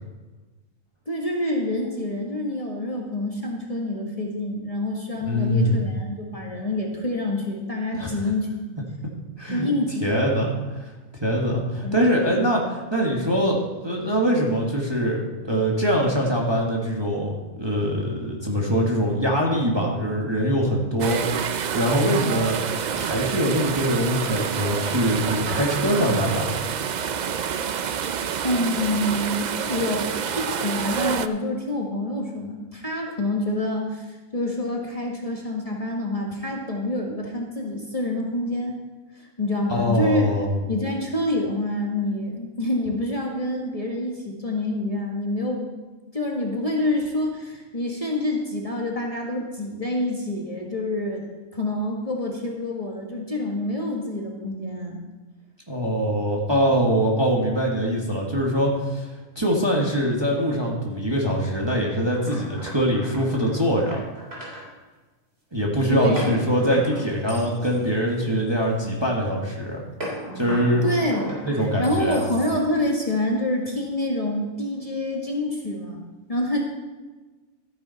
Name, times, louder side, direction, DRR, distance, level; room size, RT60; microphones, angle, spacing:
voice 1, 1.1-8.7 9.5-10.3 11.8-12.0 28.4-38.8 39.4-40.3 40.7-45.7 46.1-51.2 51.5-55.0 65.9-66.3 70.8-76.0 76.3-76.6, left 1 dB, 25° left, -1 dB, 1.6 m, -27 dB
voice 2, 5.2-5.8 8.0-8.2 9.4-9.7 10.0-10.9 11.2-21.2 21.7-22.6 22.9-26.6 39.7-40.6 55.7-59.1 59.3-64.0 65.5-69.8 70.3-70.8 71.4-72.3, equal, 20° right, -2 dB, 1.5 m, -23 dB
sound 1, 21.0-31.3, right 7 dB, 70° right, 0.4 m, -28 dB
sound 2, 62.1-64.6 66.2-68.8 70.0-72.8, equal, 50° right, 3.7 m, -36 dB
13.0 x 10.0 x 4.1 m, 1.2 s
omnidirectional pair, 1.4 m